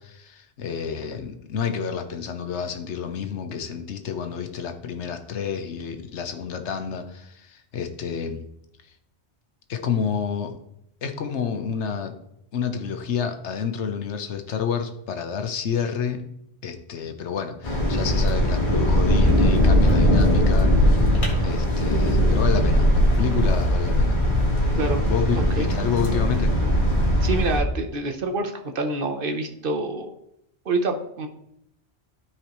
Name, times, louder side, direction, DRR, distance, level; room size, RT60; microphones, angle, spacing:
voice 1, 0.0-8.5 9.7-10.5 11.0-12.1 12.5-16.2 16.6-21.0 21.4-24.2 25.1-26.5, left 7 dB, 90° left, 7 dB, 1.1 m, -29 dB
sound 1, 17.6-27.6, equal, 45° left, 1.8 m, -20 dB
voice 2, 24.8-25.1 25.4-25.7 27.2-30.1 30.6-31.3, right 2 dB, 55° right, 6 dB, 1.0 m, -27 dB
13.0 x 4.7 x 3.0 m, 0.77 s
omnidirectional pair, 1.1 m